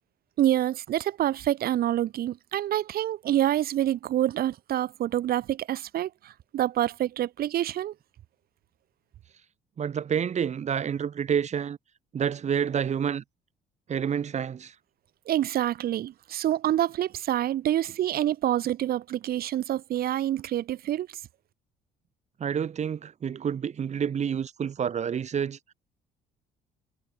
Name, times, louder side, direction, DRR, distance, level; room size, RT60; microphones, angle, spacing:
voice 1, 0.4-7.9 15.3-21.1, right 12 dB, 65° right, 2.4 m, -27 dB
voice 2, 9.8-11.8 12.1-13.2 13.9-14.7 22.4-25.6, right 8 dB, 45° right, 3.0 m, -28 dB
cardioid pair, 110°, 17 cm